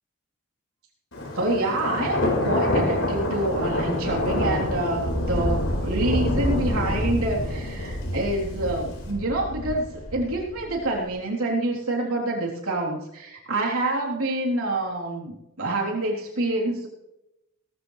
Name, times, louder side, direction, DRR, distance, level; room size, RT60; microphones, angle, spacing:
Thunder, 1.1-11.0, left 1 dB, 70° left, 4.4 m, -27 dB
voice 1, 1.3-16.9, right 2 dB, 80° right, -2 dB, 3.5 m, -27 dB
18.0 x 14.0 x 3.3 m, 0.88 s
head